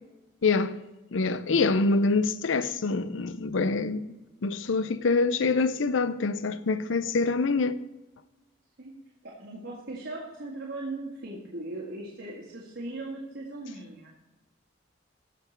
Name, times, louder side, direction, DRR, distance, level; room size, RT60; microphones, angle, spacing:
voice 1, 0.4-0.8 1.1-4.2 4.4-7.8, left 3 dB, 90° left, 0.6 m, -25 dB
voice 2, 9.2-14.2, right 2 dB, 70° right, 2.0 m, -38 dB
15.0 x 5.9 x 4.5 m
head